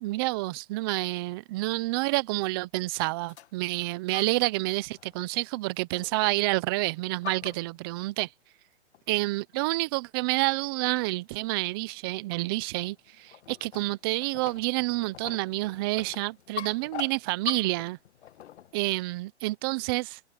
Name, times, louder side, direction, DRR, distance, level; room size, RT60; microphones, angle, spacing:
voice 1, 0.0-8.3 9.1-18.0 18.7-20.2, right 22 dB, 20° right, 0.4 m, -29 dB
sound 1, 3.3-4.6 4.9-5.3 5.9-6.6 6.9-8.2 8.9-9.0 9.5-9.6 10.2-10.6 10.8-11.1 11.6-19.0, left 11 dB, 65° left, 1.4 m, -44 dB
hypercardioid pair, 145°, 35 cm